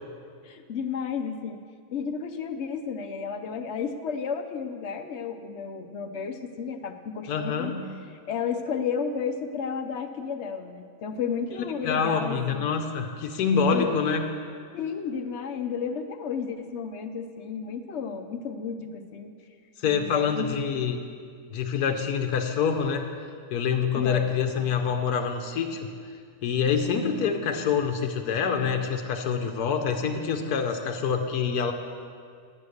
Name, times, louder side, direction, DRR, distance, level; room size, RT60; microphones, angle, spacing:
voice 1, 0.4-1.6 1.9-7.7 8.3-12.7 13.7-14.0 14.7-19.3 19.8-20.8 23.9-24.2, left 6 dB, 60° left, 8 dB, 0.8 m, -32 dB
voice 2, 7.3-7.8 11.8-14.2 19.8-21.0 21.5-23.1 23.5-26.2 26.4-31.7, left 6 dB, 90° left, 5 dB, 1.2 m, -26 dB
9.4 x 8.3 x 6.4 m, 2.2 s
omnidirectional pair, 1.6 m